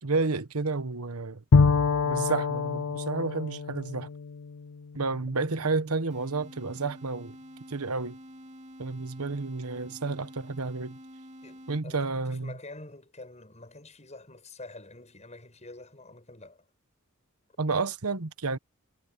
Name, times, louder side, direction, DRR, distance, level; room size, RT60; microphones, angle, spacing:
voice 1, 0.0-1.4 2.0-4.1 4.9-7.3 7.7-8.2 8.8-11.0 11.7-12.5 17.6-18.6, right 3 dB, 85° right, 1.2 m, -30 dB
Bowed string instrument, 1.5-5.2, left 4 dB, 80° left, 0.5 m, -26 dB
sound 1, 6.1-12.1, equal, 30° right, 3.1 m, -48 dB
voice 2, 11.4-16.7, left 2 dB, 30° left, 7.8 m, -47 dB
head